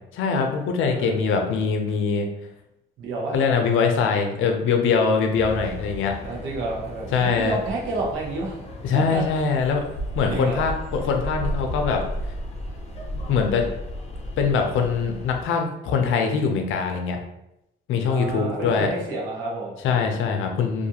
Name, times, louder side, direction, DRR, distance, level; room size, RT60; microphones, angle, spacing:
voice 1, 0.1-2.3 3.3-6.2 7.1-7.6 8.8-9.8 10.2-12.0 13.3-13.7 14.4-17.2 17.9-18.9 19.8-20.9, left 5 dB, 80° left, 4 dB, 0.5 m, -22 dB
voice 2, 3.0-3.4 6.2-8.6 8.9-9.4 10.2-10.7 18.1-19.7, right 3 dB, 80° right, -2 dB, 0.8 m, -30 dB
sound 1, 5.4-15.4, equal, 30° left, 0.5 m, -34 dB
2.5 x 2.4 x 2.8 m, 0.86 s
cardioid pair, 90°, 20 cm